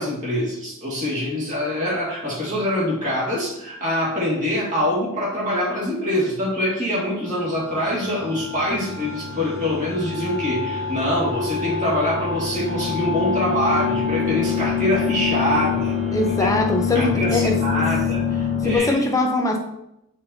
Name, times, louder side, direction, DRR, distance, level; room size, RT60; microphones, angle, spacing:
voice 1, 0.0-15.9 16.4-16.5 16.9-18.9, left 1 dB, 35° right, -7 dB, 2.1 m, -24 dB
sound 1, 7.4-18.8, left 6 dB, 55° right, 2.1 m, -26 dB
voice 2, 16.1-17.6 18.6-19.6, left 2 dB, 15° left, 3 dB, 0.6 m, -21 dB
8.6 x 4.1 x 2.8 m, 0.83 s
head